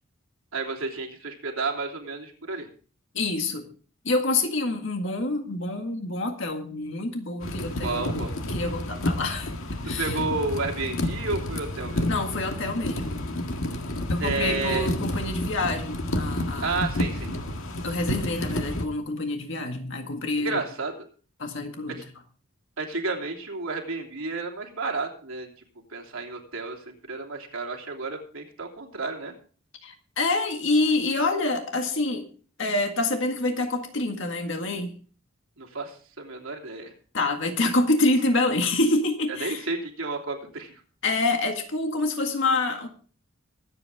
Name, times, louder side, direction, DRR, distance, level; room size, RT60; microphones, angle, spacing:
voice 1, 0.5-2.7 7.7-8.3 10.0-12.0 14.2-14.9 16.6-17.3 20.4-20.9 21.9-22.0 22.8-25.5 25.9-29.3 35.6-36.9 39.4-40.8, right 3 dB, 75° right, 1 dB, 3.2 m, -31 dB
voice 2, 3.1-3.7 4.0-9.5 9.8-10.2 12.1-13.2 14.1-16.8 17.8-20.6 21.4-22.0 29.8-32.3 32.6-35.0 37.1-39.7 41.0-42.9, left 2 dB, 65° left, 4 dB, 1.9 m, -27 dB
sound 1, 7.4-18.8, left 1 dB, 80° left, 1.7 m, -30 dB
23.0 x 8.5 x 3.6 m, 0.40 s
head